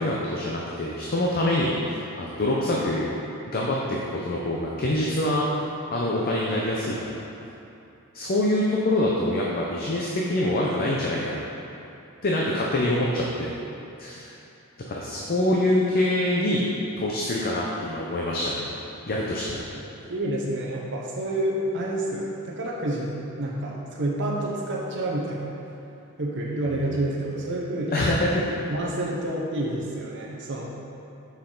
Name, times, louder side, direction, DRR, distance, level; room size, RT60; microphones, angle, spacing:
voice 1, 0.0-3.1 3.5-5.4 5.9-7.2 8.1-11.4 12.2-13.5 14.0-14.3 14.9-16.6 17.0-18.7 19.1-19.6 27.9-28.5, left 1 dB, 45° left, -3 dB, 0.6 m, -25 dB
voice 2, 20.1-23.1 23.4-25.5 26.2-28.0 28.7-30.6, right 1 dB, 55° right, -4 dB, 1.0 m, -28 dB
6.7 x 5.8 x 3.9 m, 2.7 s
head